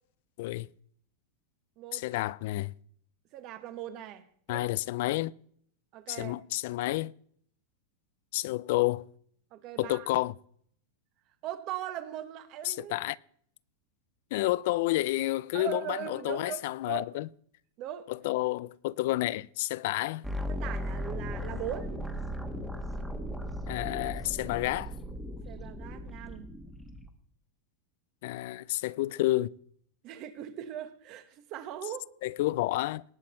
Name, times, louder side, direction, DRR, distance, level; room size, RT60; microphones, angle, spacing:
voice 1, 1.9-2.7 4.5-5.3 6.1-7.1 8.3-9.0 9.8-10.4 12.6-13.2 14.3-17.3 18.1-20.2 23.7-24.9 28.2-29.5 32.2-33.0, left 18 dB, 60° left, 0.4 m, -30 dB
voice 2, 3.3-4.7 5.9-6.4 9.5-10.1 11.4-13.0 15.5-17.1 17.8-18.1 20.5-21.9 25.4-26.5 30.0-32.1, right 11 dB, 40° right, 1.3 m, -39 dB
sound 1, 20.2-27.1, equal, 5° right, 1.4 m, -37 dB
18.5 x 7.5 x 4.3 m
supercardioid pair, 140°, 0 cm